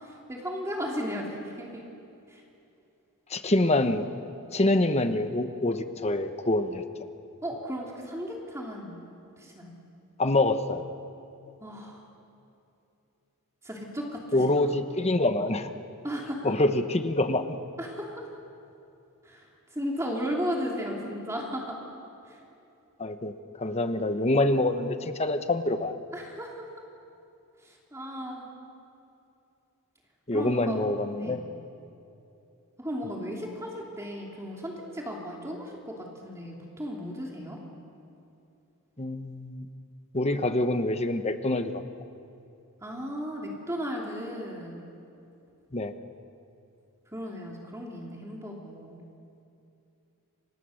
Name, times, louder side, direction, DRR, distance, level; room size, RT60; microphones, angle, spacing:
voice 1, 0.0-1.8 2.3-2.4 7.4-9.0 9.4-9.7 11.6-12.0 13.6-14.4 16.0-16.5 17.8-18.3 19.2-19.4 19.7-21.8 22.3-22.4 26.1-26.7 27.6-28.5 30.3-30.8 31.2-31.4 32.8-35.9 36.2-37.6 42.8-44.8 47.1-49.0, equal, 15° right, -2 dB, 2.9 m, -35 dB
voice 2, 3.3-4.0 4.5-6.8 10.2-10.8 14.3-15.7 16.4-17.6 23.0-26.0 30.3-31.4 39.0-39.7 40.1-41.8 45.7-45.9, left 2 dB, 30° left, 8 dB, 1.1 m, -26 dB
29.0 x 25.0 x 6.5 m, 2.7 s
head